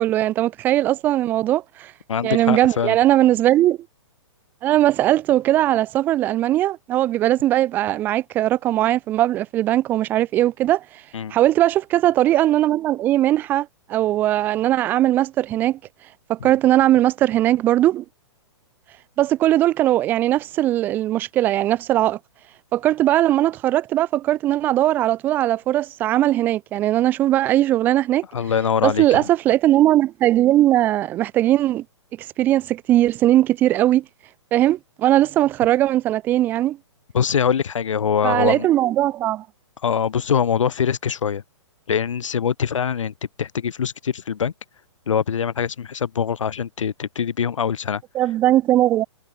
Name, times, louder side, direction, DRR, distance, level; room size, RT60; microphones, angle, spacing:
voice 1, 0.0-1.9 2.2-3.8 4.6-10.8 11.3-15.8 16.3-18.0 19.2-22.2 22.7-28.2 28.8-31.8 32.4-34.0 34.5-36.8 38.2-39.4 48.1-49.0, right 13 dB, 10° right, 0.7 m, -19 dB
voice 2, 2.1-3.0 11.1-11.3 16.4-16.5 28.3-29.3 37.1-38.7 39.8-41.4 41.9-44.5 45.1-48.0, left 7 dB, 85° left, 3.8 m, -23 dB
hypercardioid pair, 175°, 16 cm